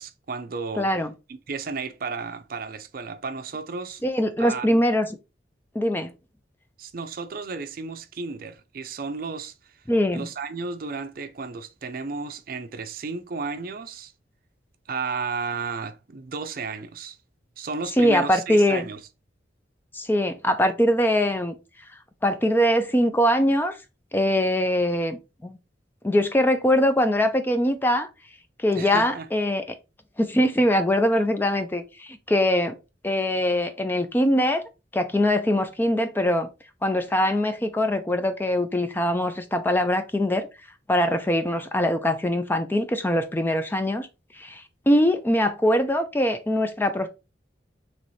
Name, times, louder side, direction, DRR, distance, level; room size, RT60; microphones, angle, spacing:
voice 1, 0.0-0.9 1.3-4.0 4.4-4.8 6.8-9.7 10.1-14.1 14.9-17.2 17.6-19.0 28.7-29.3, right 4 dB, 55° right, 0.5 m, -33 dB
voice 2, 0.8-1.1 4.0-5.1 5.7-6.1 9.9-10.3 18.0-18.9 19.9-21.6 22.2-23.8 24.1-25.6 26.0-28.1 28.6-29.6 30.2-32.8 33.0-34.6 34.9-36.5 36.8-40.5 40.9-44.1 44.4-47.1, left 1 dB, 10° left, 0.4 m, -22 dB
4.1 x 3.1 x 3.1 m
head